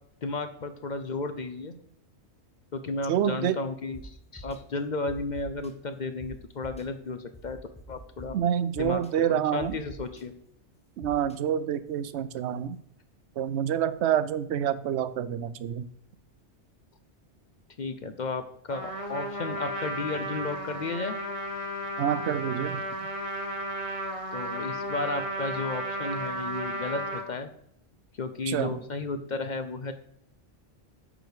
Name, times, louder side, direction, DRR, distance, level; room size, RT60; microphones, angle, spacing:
voice 1, 0.2-1.7 2.7-7.6 7.9-8.4 8.8-9.0 9.3-10.3 17.8-21.2 24.3-27.5 28.2-29.9, left 3 dB, 50° left, 9 dB, 0.6 m, -33 dB
voice 2, 3.1-3.6 8.3-9.8 11.0-12.8 13.4-15.9 22.0-22.8 28.5-28.8, right 10 dB, 75° right, 14 dB, 0.8 m, -27 dB
sound 1, 3.9-4.0 4.4-4.6 5.1-5.7 6.2-6.3 6.6-6.8 7.3-8.3 8.7-9.1 9.6-10.2 11.0-11.4, left 1 dB, 5° left, 0.7 m, -45 dB
Trumpet, 18.7-27.3, right 1 dB, 30° right, 1.1 m, -34 dB
8.9 x 5.0 x 4.9 m, 0.72 s
omnidirectional pair, 1.2 m